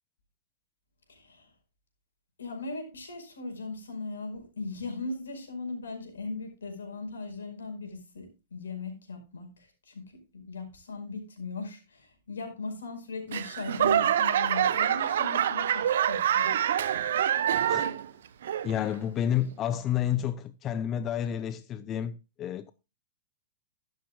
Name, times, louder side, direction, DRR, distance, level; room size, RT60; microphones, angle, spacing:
voice 1, 1.1-1.5 2.4-16.6, left 3 dB, 80° left, 5.0 m, -39 dB
Laughter / Clapping / Crowd, 13.3-18.1 18.4-18.9 19.5-19.6, right 10 dB, 65° right, 0.9 m, -26 dB
voice 2, 18.6-22.7, left 10 dB, 30° left, 0.7 m, -30 dB
13.0 x 12.0 x 2.4 m
hypercardioid pair, 105°, 0 cm